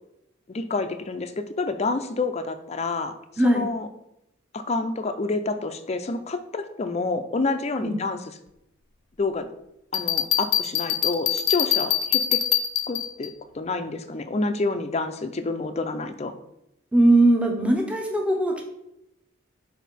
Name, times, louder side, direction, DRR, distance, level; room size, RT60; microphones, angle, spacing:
voice 1, 0.5-3.2 3.4-3.9 4.5-8.2 9.2-9.5 9.9-12.4 12.9-16.3, left 3 dB, 30° left, 9 dB, 0.5 m, -28 dB
Bell, 9.9-13.3, left 11 dB, 90° left, 0.6 m, -24 dB
voice 2, 16.9-18.6, right 1 dB, 5° right, 1 dB, 0.9 m, -20 dB
6.3 x 4.4 x 4.1 m, 0.83 s
head